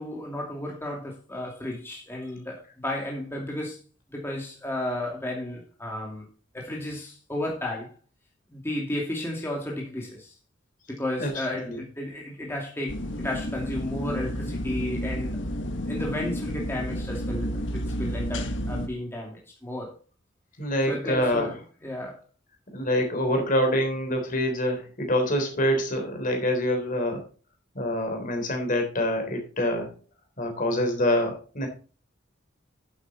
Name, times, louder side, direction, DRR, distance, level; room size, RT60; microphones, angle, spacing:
voice 1, 0.0-3.8 4.1-6.3 6.5-7.9 8.5-10.3 10.9-15.4 15.9-19.9 20.9-22.2, left 1 dB, 10° left, 2.6 m, -33 dB
sound 1, 12.9-18.9, equal, 65° left, 1.5 m, -31 dB
voice 2, 20.6-21.5 22.7-27.2 27.8-29.9 30.4-31.7, left 1 dB, 45° left, 3.6 m, -26 dB
10.5 x 8.2 x 4.2 m
head